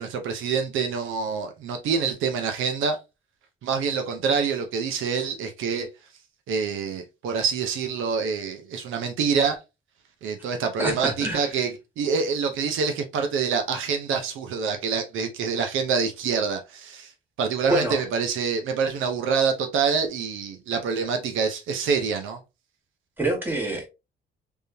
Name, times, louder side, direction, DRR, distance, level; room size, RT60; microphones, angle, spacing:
voice 1, 0.0-3.0 3.6-5.9 6.5-9.6 10.2-11.7 12.0-17.1 17.4-22.4, right 5 dB, 80° right, 0.7 m, -26 dB
voice 2, 10.8-11.7 17.7-18.0 23.2-23.9, right 1 dB, 10° right, 1.8 m, -27 dB
3.6 x 3.3 x 2.7 m
cardioid pair, 90°, 20 cm